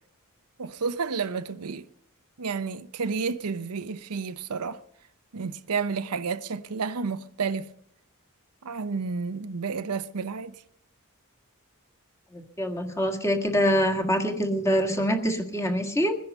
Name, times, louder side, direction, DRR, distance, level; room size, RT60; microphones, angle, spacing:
voice 1, 0.6-1.9 2.4-4.8 5.3-7.7 8.6-10.5, right 5 dB, 90° right, 0.7 m, -31 dB
voice 2, 12.3-16.2, equal, 15° left, 1.7 m, -25 dB
21.5 x 10.5 x 5.4 m
head